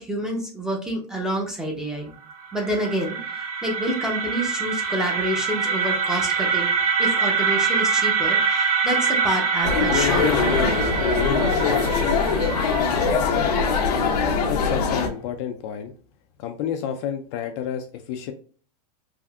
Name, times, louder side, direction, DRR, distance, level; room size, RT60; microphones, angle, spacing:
voice 1, 0.0-2.1 2.5-6.7 7.0-10.5, equal, 5° right, 0 dB, 0.6 m, -28 dB
sound 1, 2.3-14.2, right 6 dB, 60° right, 0.8 m, -25 dB
sound 2, 9.6-15.1, left 5 dB, 80° left, 0.7 m, -22 dB
voice 2, 14.5-15.9 16.4-18.3, left 8 dB, 45° left, 5 dB, 0.4 m, -30 dB
3.5 x 2.5 x 2.3 m, 0.41 s
supercardioid pair, 150°, 20 cm